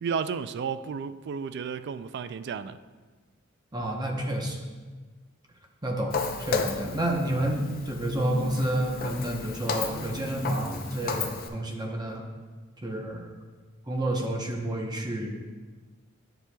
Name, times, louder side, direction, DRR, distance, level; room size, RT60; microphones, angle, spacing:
voice 1, 0.0-2.8, right 6 dB, 55° right, 0.3 m, -32 dB
voice 2, 3.7-4.6 5.8-12.2 12.8-13.3 13.9-15.3, right 1 dB, 20° right, 0.8 m, -29 dB
Walk footsteps, 6.1-11.5, left 4 dB, 45° left, 0.6 m, -34 dB
9.9 x 7.4 x 2.2 m
head